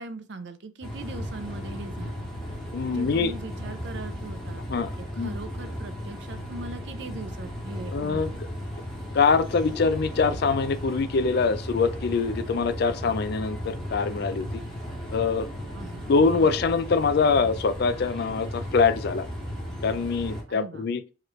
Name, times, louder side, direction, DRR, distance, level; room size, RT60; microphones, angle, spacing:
voice 1, 0.0-2.3 2.9-4.6 5.0-8.4 15.7-16.5 20.5-20.9, right 3 dB, 60° right, 0.6 m, -40 dB
sound 1, 0.8-20.4, equal, 5° left, 1.7 m, -35 dB
voice 2, 2.7-3.3 4.7-5.3 7.9-8.3 9.1-14.6 15.1-15.5 16.1-19.3 19.8-21.0, left 4 dB, 55° left, 0.4 m, -24 dB
4.8 x 3.1 x 3.0 m
head